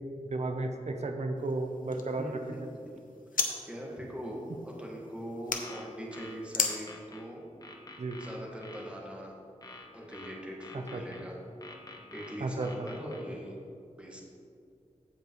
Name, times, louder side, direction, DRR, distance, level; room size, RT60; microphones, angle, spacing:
voice 1, 0.3-2.6 8.0-8.2 10.7-11.0 12.4-12.9, right 2 dB, 55° right, 5 dB, 0.7 m, -33 dB
sound 1, 1.4-3.5 3.8-5.6 6.5-6.8, left 4 dB, 90° left, 0.8 m, -36 dB
voice 2, 2.1-2.6 3.3-7.4 8.2-9.4 9.9-11.4 12.1-13.6 14.0-14.2, equal, 10° right, -3 dB, 1.6 m, -41 dB
sound 2, 5.5-7.2 7.6-8.9 9.6-11.2 11.6-13.2, left 2 dB, 25° left, 0.9 m, -48 dB
15.0 x 5.2 x 3.1 m, 2.4 s
wide cardioid pair, 105°, 14 cm